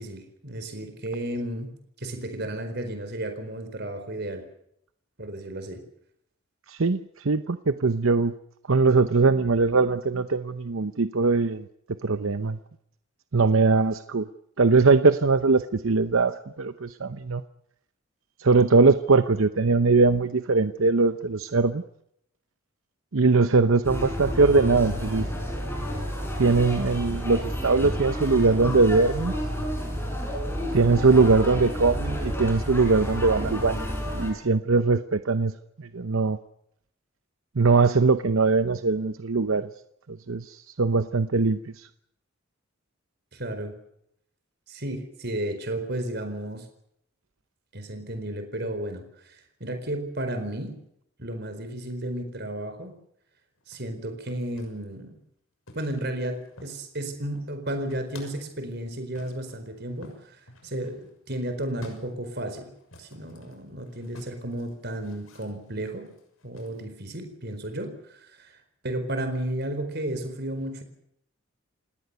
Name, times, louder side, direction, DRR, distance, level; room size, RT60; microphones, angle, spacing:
voice 1, 0.0-1.7 2.0-4.4 5.2-5.8 43.3-43.7 44.7-46.6 47.7-50.7 51.2-52.9 53.7-55.2 55.7-60.4 60.6-62.7 63.0-66.1 66.4-68.6 68.8-70.8, right 1 dB, 50° right, 8 dB, 4.5 m, -33 dB
voice 2, 6.7-8.3 8.7-11.6 12.0-12.6 13.3-14.3 14.6-17.4 18.4-21.8 23.1-25.3 26.4-29.3 30.7-33.9 34.1-35.5 35.9-36.4 37.6-39.7 40.3-41.9, right 3 dB, 70° right, 11 dB, 0.8 m, -21 dB
sound 1, 23.8-34.3, equal, 10° left, 6.7 m, -30 dB
sound 2, 53.5-54.9 55.7-57.0 57.2-58.5 59.1-66.8, left 1 dB, 80° left, 6.4 m, -51 dB
29.0 x 18.0 x 6.9 m, 0.74 s
head